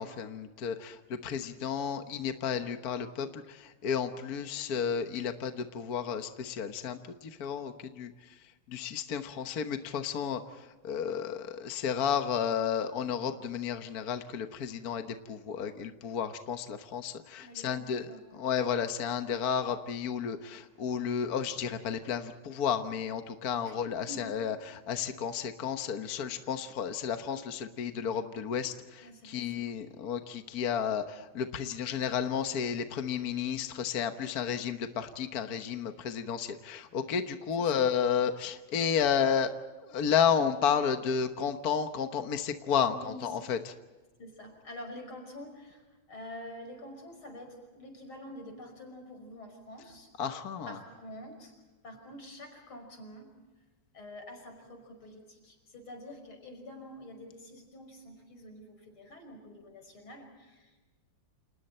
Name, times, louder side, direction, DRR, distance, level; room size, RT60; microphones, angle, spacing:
voice 1, 0.0-8.1 8.7-18.1 18.3-24.5 24.9-39.5 39.8-42.9 43.2-43.7 50.2-50.8, left 7 dB, 50° left, 7 dB, 1.5 m, -32 dB
voice 2, 17.4-18.4 23.6-23.8 24.1-24.3 26.0-26.3 29.0-29.6 37.6-37.8 42.8-43.5 44.2-50.1 50.7-51.5 51.8-53.3 53.9-60.8, left 1 dB, 85° left, 4 dB, 6.5 m, -47 dB
29.5 x 28.5 x 4.4 m, 1.2 s
omnidirectional pair, 2.3 m